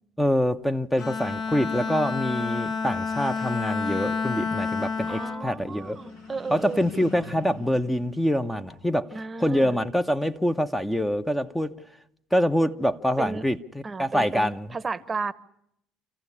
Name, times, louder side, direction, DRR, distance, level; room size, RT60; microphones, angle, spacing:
voice 1, 0.2-6.0 6.5-9.1 9.4-11.8 12.3-14.7, equal, 5° left, 0.9 m, -25 dB
Bowed string instrument, 1.0-6.5, left 4 dB, 50° left, 1.5 m, -30 dB
voice 2, 5.0-6.8 9.1-9.8 13.2-13.4 13.8-15.3, right 4 dB, 25° right, 1.0 m, -33 dB
sound 1, 5.4-9.0, left 2 dB, 85° left, 7.0 m, -44 dB
27.0 x 15.0 x 9.8 m
supercardioid pair, 80°, 0 cm